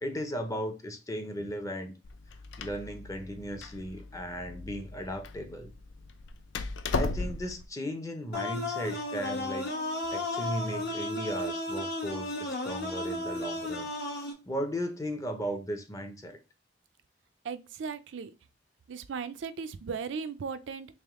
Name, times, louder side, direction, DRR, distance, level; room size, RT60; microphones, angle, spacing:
voice 1, 0.0-1.9 2.6-5.7 6.9-9.7 10.1-13.9 14.5-16.4, equal, 20° left, 0.5 m, -36 dB
Door, 2.0-7.6, left 3 dB, 85° left, 0.4 m, -36 dB
sound 1, 8.3-14.3, left 2 dB, 60° left, 1.0 m, -34 dB
voice 2, 17.4-18.3 18.9-20.9, right 5 dB, 75° right, 0.4 m, -37 dB
3.4 x 3.0 x 3.6 m
head